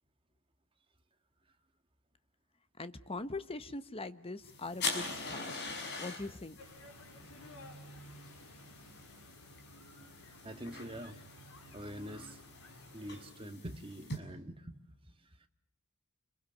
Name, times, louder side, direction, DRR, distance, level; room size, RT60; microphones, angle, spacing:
voice 1, 2.8-6.6, left 2 dB, 25° left, 12 dB, 1.2 m, -42 dB
sound 1, 4.4-14.2, left 3 dB, 50° left, 5.8 m, -44 dB
sound 2, 6.6-13.2, equal, 70° left, 5.8 m, -54 dB
voice 2, 7.1-7.4 10.4-11.2 11.7-12.4 12.9-14.7 15.1-15.5, equal, 25° right, 6 dB, 2.0 m, -45 dB
29.5 x 22.5 x 6.9 m, 0.73 s
head